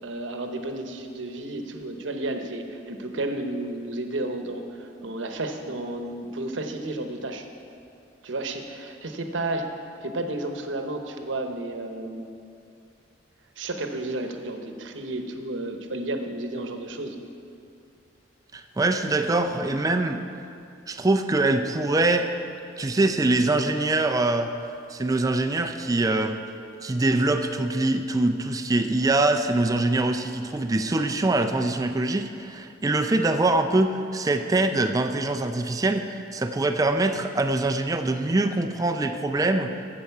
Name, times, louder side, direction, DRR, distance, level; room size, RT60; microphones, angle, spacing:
voice 1, 0.0-7.5 8.2-12.3 13.6-17.2, right 2 dB, 80° right, 5 dB, 0.9 m, -32 dB
voice 2, 18.5-20.2 20.9-22.3 22.8-24.5 24.9-26.4 26.8-39.7, right 2 dB, 20° right, 6 dB, 0.4 m, -23 dB
12.5 x 7.8 x 4.7 m, 2.5 s
head